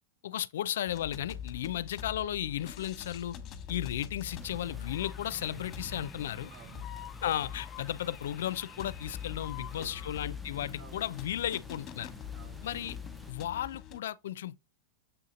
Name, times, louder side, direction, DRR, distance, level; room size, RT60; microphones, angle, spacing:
voice 1, 0.2-3.4 3.7-6.5 7.2-12.1 12.6-13.0 13.3-14.6, left 11 dB, 75° left, 0.4 m, -35 dB
sound 1, 0.9-14.0, left 9 dB, 35° left, 1.0 m, -44 dB
sound 2, 4.2-13.3, right 1 dB, 5° right, 0.5 m, -51 dB
voice 2, 6.3-7.2 7.8-7.9 9.6-10.4 10.8-11.2 12.3-12.7, right 5 dB, 45° right, 1.7 m, -54 dB
6.9 x 2.8 x 5.0 m
hypercardioid pair, 120°, 0 cm